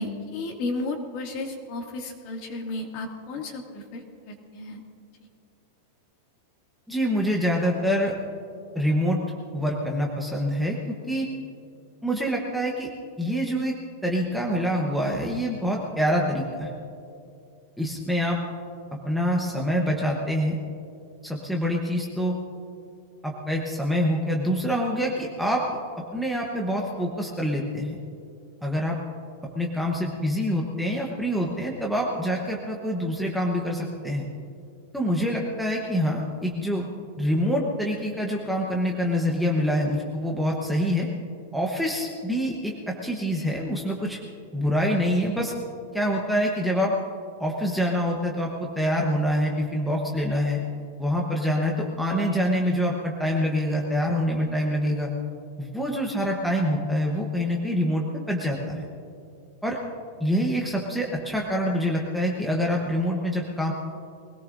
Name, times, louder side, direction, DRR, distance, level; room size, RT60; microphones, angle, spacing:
voice 1, 0.0-4.8, left 2 dB, 40° left, 2 dB, 2.1 m, -33 dB
voice 2, 6.9-8.1 8.7-9.2 9.5-11.3 12.0-12.9 13.2-13.7 14.0-16.7 17.8-18.4 19.0-20.6 21.2-22.3 23.2-25.6 26.1-28.0 28.6-29.0 29.5-34.2 34.9-36.8 37.2-41.1 41.5-44.2 44.5-45.5 45.9-46.9 47.4-50.6 51.0-55.1 55.6-58.8 59.6-59.8 60.2-63.7, equal, ahead, -2 dB, 1.0 m, -26 dB
23.0 x 17.5 x 2.6 m, 2.5 s
supercardioid pair, 175°, 0 cm